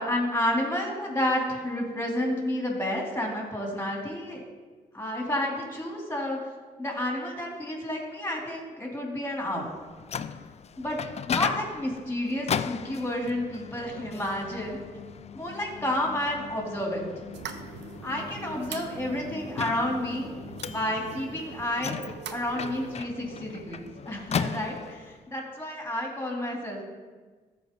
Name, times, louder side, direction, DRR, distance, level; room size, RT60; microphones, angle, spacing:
voice 1, 0.0-4.5 4.9-6.4 6.8-9.7 10.8-11.0 11.3-14.8 15.3-17.1 18.0-20.3 20.7-22.0 22.3-26.8, left 1 dB, 10° left, 0 dB, 2.9 m, -30 dB
Microwave oven, 9.7-25.2, left 7 dB, 35° left, 0.4 m, -37 dB
sound 1, 17.3-23.0, right 7 dB, 70° right, 0.6 m, -42 dB
13.5 x 4.7 x 3.7 m, 1.4 s
hypercardioid pair, 50°, 19 cm